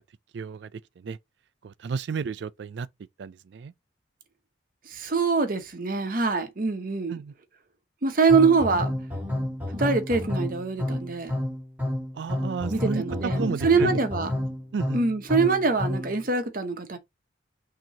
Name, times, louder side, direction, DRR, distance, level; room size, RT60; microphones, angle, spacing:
voice 1, 0.3-1.2 1.6-2.9 3.2-3.7 7.1-7.3 12.1-13.0 13.4-13.9 14.7-15.0, right 5 dB, 65° right, 0.3 m, -32 dB
voice 2, 4.9-7.2 8.0-8.9 9.7-11.3 12.7-14.3 14.9-17.0, right 4 dB, 45° right, 0.9 m, -24 dB
sound 1, 8.3-16.2, left 1 dB, 10° right, 1.4 m, -30 dB
5.9 x 2.9 x 2.8 m
head